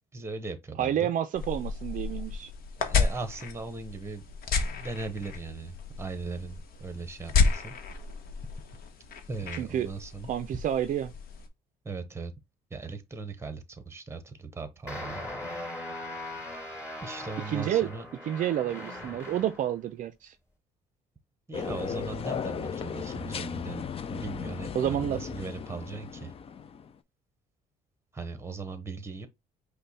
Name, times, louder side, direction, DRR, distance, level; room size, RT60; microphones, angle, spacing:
voice 1, 0.1-1.1 2.8-4.2 4.5-7.7 9.3-10.3 11.8-12.3 12.7-15.3 17.0-18.1 21.5-26.3 28.1-29.3, right 4 dB, 15° right, 1.0 m, -38 dB
voice 2, 0.8-2.5 9.6-9.9 10.3-11.1 17.5-17.9 18.3-20.4 24.7-25.2, right 10 dB, 50° right, 0.4 m, -29 dB
sound 1, 1.4-11.5, left 5 dB, 60° left, 1.0 m, -32 dB
sound 2, 14.9-19.7, left 1 dB, 15° left, 3.1 m, -39 dB
sound 3, 21.5-26.9, left 7 dB, 35° left, 0.4 m, -36 dB
5.3 x 2.2 x 4.1 m
cardioid pair, 110°, 17 cm